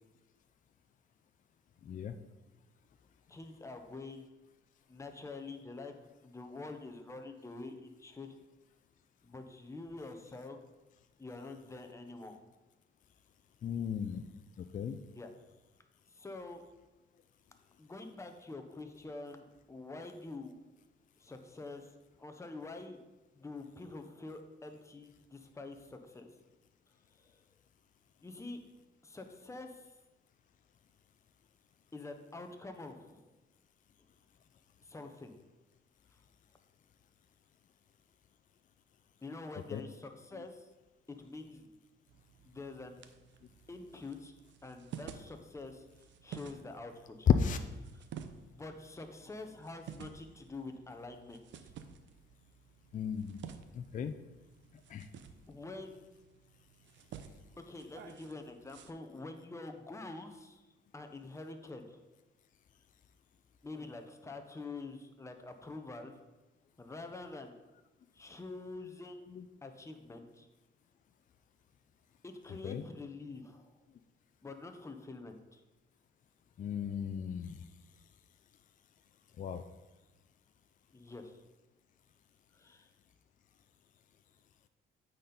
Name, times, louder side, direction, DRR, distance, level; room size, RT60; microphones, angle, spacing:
voice 1, 1.8-2.2 13.6-15.0 39.7-39.8 47.3-47.6 52.9-53.5 53.7-54.2 54.9-55.1 69.3-69.4 72.6-72.8 76.6-77.6 79.4-79.6, left 7 dB, 40° left, 9 dB, 0.4 m, -34 dB
voice 2, 3.3-4.2 4.9-5.9 6.2-8.4 9.2-10.6 11.2-12.4 15.1-15.3 16.1-16.6 17.8-20.5 21.2-21.9 22.2-23.0 23.4-26.3 27.2-27.4 28.2-28.6 29.0-29.9 31.9-33.3 34.8-35.4 39.2-40.7 41.1-41.7 42.4-43.0 43.7-44.3 44.6-45.8 46.2-47.3 48.5-51.7 55.5-56.1 57.6-60.7 60.9-62.0 63.6-66.2 66.8-67.6 68.1-69.2 69.6-70.5 72.2-73.7 74.4-75.6 80.9-81.4 82.5-82.9, left 3 dB, 15° left, 5 dB, 0.8 m, -46 dB
sound 1, 42.1-58.9, right 8 dB, 70° right, 0.6 m, -52 dB
8.9 x 4.4 x 3.9 m, 1.1 s
cardioid pair, 90°, 20 cm